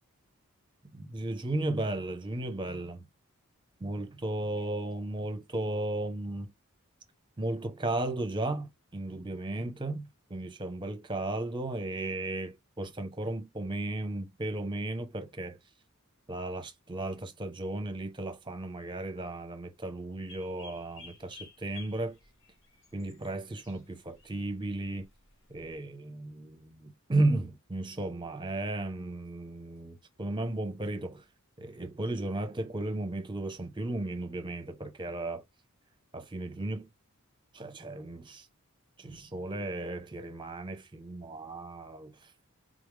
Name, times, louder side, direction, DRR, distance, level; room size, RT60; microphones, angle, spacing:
voice 1, 0.9-3.1 3.8-6.5 7.4-15.6 16.3-22.2 22.9-25.1 25.5-31.2 31.6-35.4 36.1-36.9 37.5-38.5 39.0-42.3, right 2 dB, 20° right, 0.9 m, -35 dB
sound 1, 20.3-25.8, left 4 dB, 65° left, 1.5 m, -54 dB
3.8 x 3.4 x 3.3 m
head